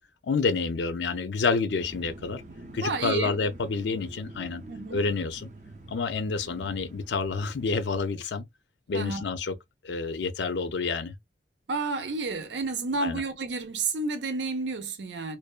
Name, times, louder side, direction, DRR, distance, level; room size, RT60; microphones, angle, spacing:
voice 1, 0.2-2.4 2.7-4.6 4.9-5.5 5.9-8.5 8.9-9.6 9.8-11.1 13.0-13.2, left 4 dB, 80° left, 0.5 m, -28 dB
sound 1, 1.7-8.1, right 2 dB, 45° right, 0.4 m, -47 dB
voice 2, 2.8-3.4 4.7-5.0 8.9-9.2 11.7-15.4, right 3 dB, 85° right, 0.6 m, -30 dB
2.5 x 2.2 x 2.3 m
head